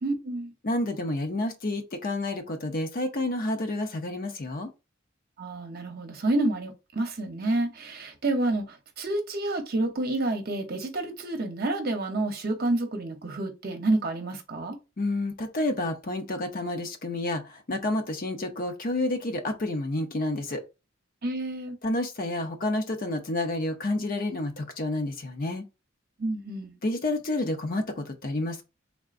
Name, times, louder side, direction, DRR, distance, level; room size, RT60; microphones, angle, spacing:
voice 1, 0.0-0.5 5.4-14.8 21.2-21.8 26.2-26.7, right 2 dB, 50° right, 0.8 m, -29 dB
voice 2, 0.6-4.7 15.0-20.6 21.8-25.6 26.8-28.6, left 2 dB, 50° left, 0.7 m, -29 dB
3.6 x 3.6 x 2.5 m
head